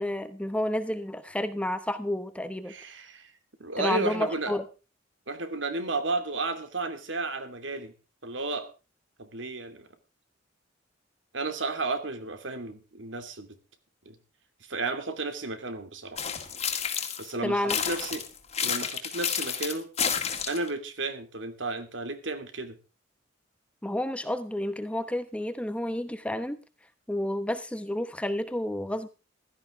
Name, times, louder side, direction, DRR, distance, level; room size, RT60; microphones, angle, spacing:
voice 1, 0.0-2.7 3.8-4.6 17.4-17.8 23.8-26.6 27.1-29.1, left 1 dB, 5° left, 11 dB, 1.0 m, -30 dB
voice 2, 2.7-3.3 3.6-4.6 5.3-7.9 8.2-8.7 9.2-9.9 11.3-13.6 14.0-14.2 14.6-16.2 17.2-18.2 18.6-19.9 20.5-22.8, right 3 dB, 70° right, 9 dB, 2.6 m, -33 dB
sound 1, 16.2-17.3 17.7-20.7, left 7 dB, 35° left, 2.1 m, -30 dB
16.0 x 13.5 x 3.7 m, 0.32 s
head